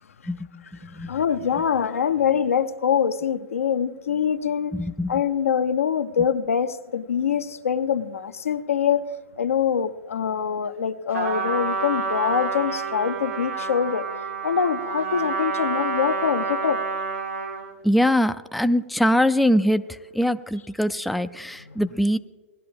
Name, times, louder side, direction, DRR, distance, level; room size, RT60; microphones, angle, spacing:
voice 1, 0.3-1.1 4.7-5.1 17.8-22.2, equal, ahead, 10 dB, 0.3 m, -23 dB
voice 2, 0.9-4.8 5.1-9.0 9.4-14.1 14.4-16.8 21.7-21.8, left 7 dB, 90° left, 9 dB, 0.7 m, -24 dB
Trumpet, 11.1-17.7, right 4 dB, 80° right, 2.0 m, -28 dB
18.5 x 11.5 x 3.5 m, 1.3 s
hypercardioid pair, 120°, 7 cm